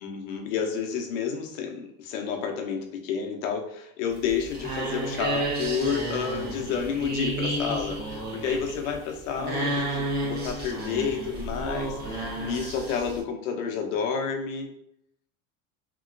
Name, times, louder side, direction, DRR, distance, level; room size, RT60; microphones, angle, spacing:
voice 1, 0.0-14.7, left 6 dB, 70° left, 3 dB, 0.8 m, -30 dB
sound 1, 4.1-13.2, right 1 dB, 25° right, 1.1 m, -31 dB
3.0 x 2.8 x 2.5 m, 0.73 s
supercardioid pair, 105°, 40 cm